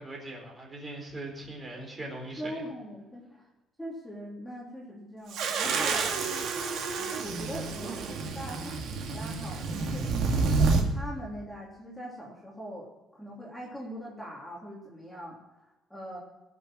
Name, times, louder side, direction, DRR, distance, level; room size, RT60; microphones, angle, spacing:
voice 1, 0.0-2.6, right 1 dB, 20° right, 0 dB, 4.1 m, -40 dB
voice 2, 2.4-3.4 3.8-6.2 6.9-12.9 13.1-15.4 15.9-16.2, equal, ahead, -4 dB, 3.1 m, -41 dB
sound 1, 5.3-10.8, right 4 dB, 70° right, 2.2 m, -29 dB
18.0 x 6.9 x 7.5 m, 1.1 s
cardioid pair, 145°, 0 cm